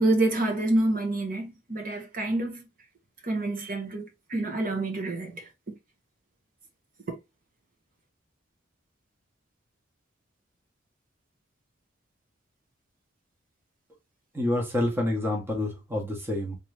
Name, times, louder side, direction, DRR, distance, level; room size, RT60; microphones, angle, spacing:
voice 1, 0.0-2.7 3.2-5.5, right 2 dB, 45° right, 1.2 m, -27 dB
voice 2, 14.3-16.6, left 1 dB, 10° right, 1.1 m, -28 dB
3.7 x 3.0 x 3.3 m
head